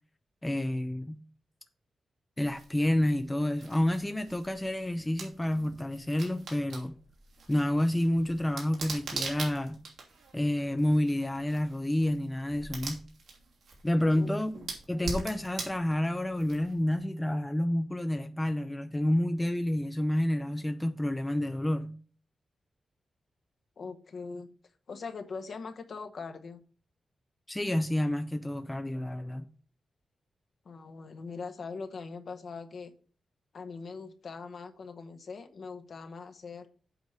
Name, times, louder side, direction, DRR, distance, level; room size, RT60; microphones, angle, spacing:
voice 1, 0.4-1.2 2.4-6.9 7.5-9.8 10.3-13.0 13.8-14.6 14.9-21.9 27.5-29.5, left 1 dB, 10° left, 0.5 m, -29 dB
sound 1, 2.4-17.0, right 3 dB, 80° right, 2.8 m, -43 dB
voice 2, 14.2-14.7 23.8-24.5 24.9-26.6 30.6-32.9 33.5-36.7, left 4 dB, 50° left, 0.9 m, -41 dB
8.1 x 4.7 x 6.5 m
wide cardioid pair, 165°, 0 cm